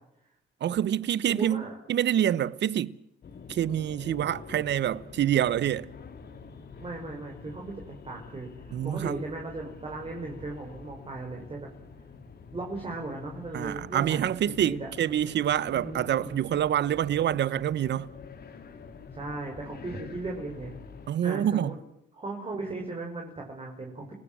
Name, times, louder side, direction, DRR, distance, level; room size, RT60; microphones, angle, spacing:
voice 1, 0.6-3.0 3.5-5.9 8.7-9.2 13.5-18.1 21.1-21.7, right 10 dB, 65° right, 1.0 m, -26 dB
voice 2, 1.3-1.8 6.8-11.7 12.5-14.9 15.7-16.4 19.1-20.7 21.2-21.8 22.2-24.1, right 2 dB, 30° right, 5.9 m, -37 dB
sound 1, 3.2-21.1, left 5 dB, 55° left, 3.6 m, -46 dB
30.0 x 17.0 x 7.7 m
cardioid pair, 90°, 20 cm